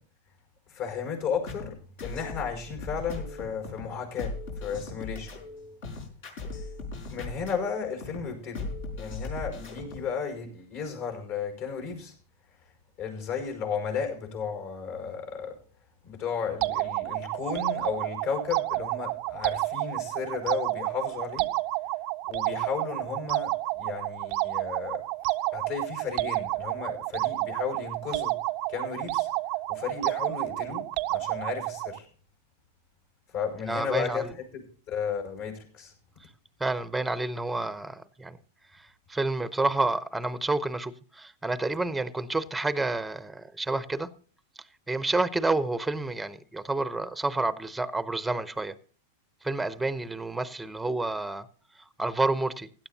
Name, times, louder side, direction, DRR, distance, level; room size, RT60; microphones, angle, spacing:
voice 1, 0.7-1.8 2.0-5.3 7.1-12.1 13.0-15.6 16.0-21.5 22.3-25.0 25.5-28.4 28.7-29.3 29.7-32.1 33.3-35.9, left 6 dB, 55° left, 5.5 m, -34 dB
sound 1, 1.5-10.1, left 3 dB, 70° left, 4.7 m, -38 dB
sound 2, 16.6-32.0, right 20 dB, 50° right, 0.5 m, -30 dB
voice 2, 33.7-34.3 36.6-38.4 38.7-44.1 44.9-48.8 49.4-51.5 51.8-52.7, right 2 dB, 5° right, 0.8 m, -29 dB
16.5 x 11.5 x 2.8 m
hypercardioid pair, 115°, 0 cm